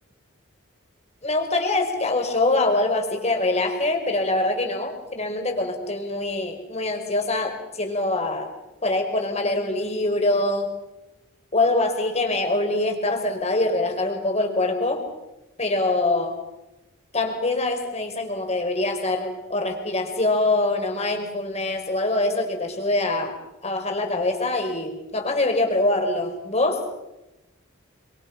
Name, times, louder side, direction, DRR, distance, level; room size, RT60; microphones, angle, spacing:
voice 1, 1.2-8.5 8.8-10.7 11.5-15.0 15.6-16.3 17.1-23.4 23.6-26.9, left 2 dB, 30° left, 4 dB, 4.8 m, -24 dB
27.0 x 26.5 x 5.8 m, 0.96 s
head